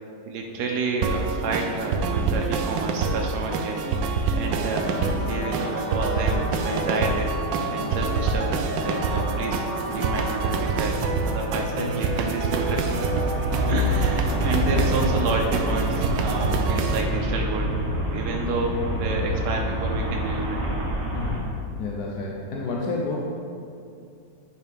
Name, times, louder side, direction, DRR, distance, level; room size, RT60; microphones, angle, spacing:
voice 1, 0.3-3.9 4.3-7.3 7.7-11.0 11.2-12.8 13.1-13.3 13.7-17.7 18.1-20.7, right 3 dB, 65° right, 0 dB, 1.2 m, -29 dB
sound 1, 1.0-17.0, right 4 dB, 90° right, 1.3 m, -26 dB
sound 2, 4.7-16.7, left 1 dB, 40° left, 1.0 m, -35 dB
voice 2, 11.6-12.0 21.1-21.5 21.8-23.2, left 3 dB, 65° left, -2 dB, 1.2 m, -30 dB
Traffic noise roadway noise, 13.4-21.4, equal, 20° right, 1.2 m, -26 dB
9.4 x 5.6 x 3.5 m, 2.5 s
omnidirectional pair, 1.9 m